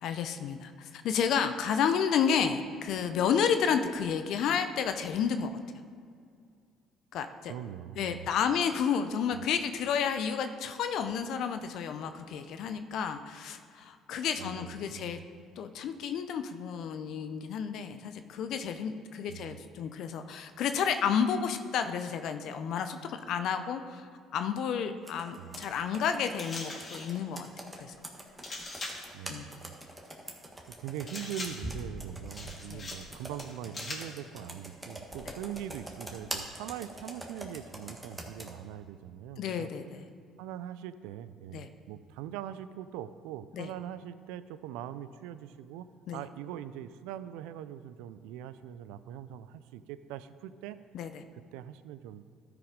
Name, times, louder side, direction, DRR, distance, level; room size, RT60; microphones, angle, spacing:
voice 1, 0.0-5.5 7.1-7.5 8.0-15.2 15.6-24.1 24.3-27.5 27.8-27.9 29.3-29.5 32.7-32.8 39.4-40.0 41.5-41.7 43.6-43.7 46.1-46.2 50.9-51.1, left 7 dB, 65° left, 9 dB, 0.5 m, -31 dB
voice 2, 7.5-8.4 9.3-9.5 14.4-15.3 19.3-19.6 25.4-25.6 29.1-29.6 30.7-39.7 40.4-50.8 51.3-52.2, right 11 dB, 80° right, 14 dB, 0.4 m, -42 dB
Computer keyboard, 25.0-38.5, right 1 dB, 15° right, 1.5 m, -44 dB
sound 1, 26.4-27.2 28.4-29.1 31.1-31.8 32.4-33.1 33.4-34.2, left 2 dB, 35° left, 1.8 m, -41 dB
12.5 x 4.9 x 5.1 m, 2.2 s
supercardioid pair, 70°, 0 cm